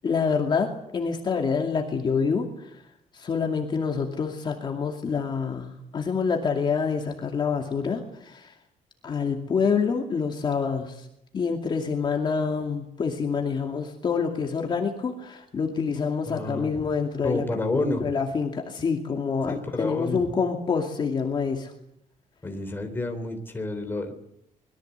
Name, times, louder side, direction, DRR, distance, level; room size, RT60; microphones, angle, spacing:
voice 1, 0.0-2.7 3.1-8.5 9.0-11.1 11.3-17.4 17.7-21.7, left 5 dB, 35° left, 2 dB, 2.5 m, -27 dB
voice 2, 16.3-16.9 17.2-18.1 19.5-20.2 22.4-24.1, left 2 dB, 15° left, 5 dB, 3.5 m, -29 dB
25.5 x 22.0 x 8.1 m, 0.77 s
cardioid pair, 180°, 14 cm